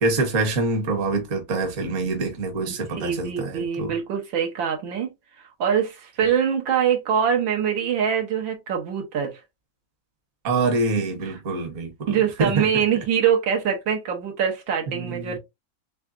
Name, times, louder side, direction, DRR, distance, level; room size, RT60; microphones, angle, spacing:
voice 1, 0.0-3.9 10.4-12.8 14.9-15.4, right 3 dB, 45° right, 1.3 m, -25 dB
voice 2, 3.0-5.1 5.6-9.4 12.1-15.4, right 8 dB, 80° right, 1.7 m, -24 dB
3.9 x 3.5 x 2.4 m
omnidirectional pair, 2.1 m